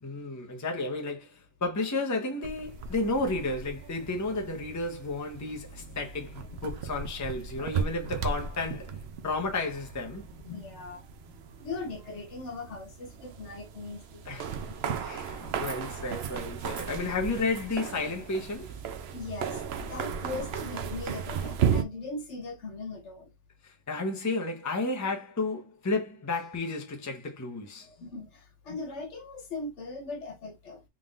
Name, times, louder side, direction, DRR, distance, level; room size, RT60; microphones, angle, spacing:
voice 1, 0.0-9.0 9.2-10.3 14.3-14.6 15.0-18.7 23.6-27.9, left 2 dB, 15° left, 0.7 m, -32 dB
sound 1, 2.4-21.8, right 7 dB, 65° right, 0.8 m, -36 dB
voice 2, 6.9-7.7 10.4-15.0 19.1-23.3 27.8-30.8, left 3 dB, 70° left, 1.4 m, -40 dB
3.7 x 3.6 x 2.4 m
omnidirectional pair, 1.3 m